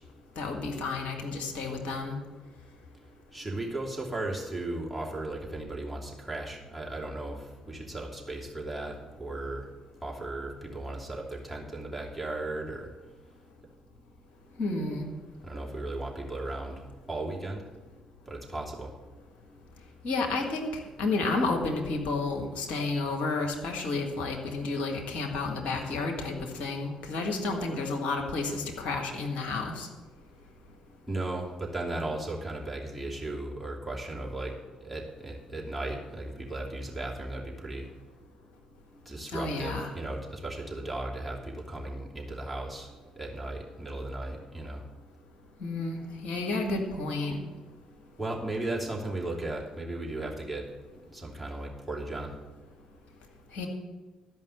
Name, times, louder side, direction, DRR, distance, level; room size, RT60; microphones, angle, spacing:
voice 1, 0.4-2.2 14.6-15.1 20.0-29.9 39.3-39.9 45.6-47.4 53.5-53.7, left 3 dB, 60° left, 1 dB, 1.7 m, -31 dB
voice 2, 3.3-9.7 10.0-12.9 15.4-17.6 18.3-19.0 31.1-37.9 39.0-44.8 48.2-52.4, right 2 dB, ahead, -3 dB, 2.9 m, -36 dB
13.0 x 5.5 x 7.8 m, 1.2 s
hypercardioid pair, 45°, 3 cm